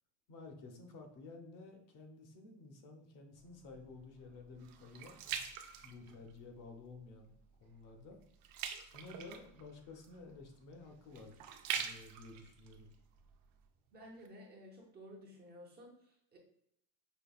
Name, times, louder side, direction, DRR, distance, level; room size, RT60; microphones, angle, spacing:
voice 1, 0.3-5.1 5.8-8.2 8.9-11.4 11.7-12.9, left 3 dB, 60° left, 3 dB, 0.8 m, -53 dB
sound 1, 3.4-6.6 7.1-7.4 7.7-13.7 14.2-14.3, right 8 dB, 75° right, 0.5 m, -44 dB
voice 2, 13.9-16.4, equal, 25° right, -1 dB, 0.7 m, -54 dB
5.3 x 2.3 x 2.3 m, 0.75 s
cardioid pair, 145°, 36 cm